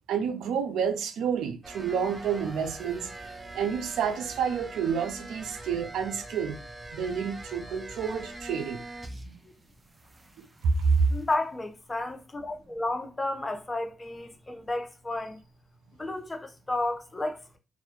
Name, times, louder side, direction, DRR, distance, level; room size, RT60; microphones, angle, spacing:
voice 1, 0.1-3.1 3.5-6.6 6.9-8.8 9.2-9.3 10.4-10.5 10.8-11.1, right 6 dB, 85° right, 0.3 m, -29 dB
sound 1, 1.6-9.5 9.8-11.3, right 2 dB, 25° right, 0.4 m, -43 dB
voice 2, 11.1-15.4 16.0-17.6, left 2 dB, 25° left, 0.5 m, -32 dB
2.2 x 2.1 x 2.8 m
cardioid pair, 65°, 0 cm